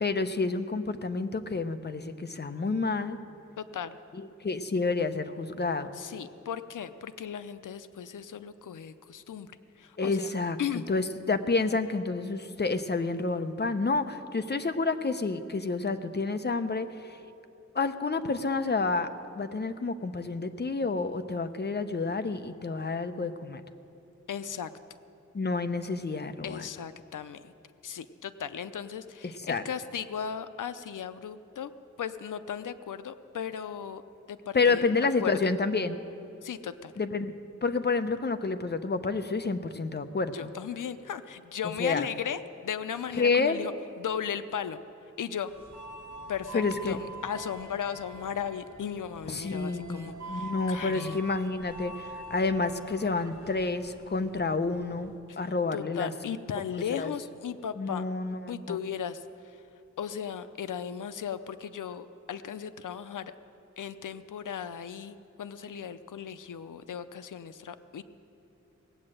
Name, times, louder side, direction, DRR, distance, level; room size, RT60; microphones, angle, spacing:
voice 1, 0.0-3.2 4.1-5.9 10.0-17.2 17.7-19.1 19.3-23.6 25.3-26.6 29.2-29.6 34.5-36.0 37.0-37.3 37.6-40.5 41.8-42.1 43.2-43.6 46.5-47.0 49.3-56.1 56.9-57.1 57.8-58.8, left 3 dB, 35° left, 9 dB, 0.7 m, -29 dB
voice 2, 3.6-4.0 5.9-9.5 9.8-10.9 24.3-24.7 26.4-27.5 27.8-31.7 32.0-34.0 34.3-35.3 36.4-36.9 40.3-44.8 45.2-45.5 46.3-51.2 55.3-55.4 55.7-58.0 58.5-59.2 60.0-63.3 63.8-68.0, left 8 dB, 85° left, 12 dB, 0.6 m, -36 dB
sound 1, 45.5-55.2, right 2 dB, 65° right, 1.7 m, -45 dB
18.0 x 8.7 x 7.7 m, 2.9 s
wide cardioid pair, 100°, 30 cm